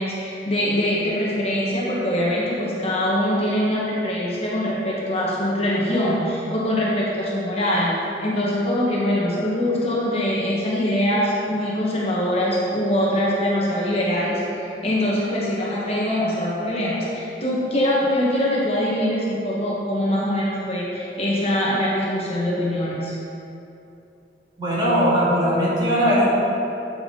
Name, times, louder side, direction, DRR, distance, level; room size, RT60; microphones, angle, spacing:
voice 1, 0.0-7.9 8.2-23.1, left 1 dB, 35° left, -6 dB, 1.4 m, -23 dB
voice 2, 24.6-26.3, equal, 25° right, -8 dB, 2.0 m, -19 dB
8.4 x 6.9 x 3.9 m, 2.8 s
head